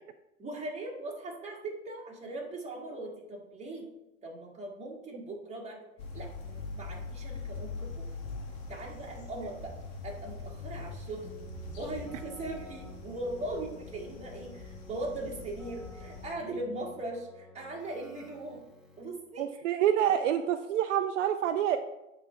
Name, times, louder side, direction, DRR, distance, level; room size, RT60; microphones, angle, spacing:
voice 1, 0.4-3.9 4.2-5.8 6.1-8.0 8.7-9.7 10.0-11.4 11.8-18.7 19.0-19.5, right 2 dB, 15° right, -2 dB, 1.8 m, -39 dB
sound 1, 6.0-16.3, left 3 dB, 50° left, 1.7 m, -43 dB
Keyboard (musical), 11.2-19.3, left 2 dB, ahead, 1.2 m, -52 dB
voice 2, 19.4-21.8, right 10 dB, 65° right, 8 dB, 0.5 m, -27 dB
8.6 x 3.4 x 4.4 m, 0.91 s
hypercardioid pair, 105°, 39 cm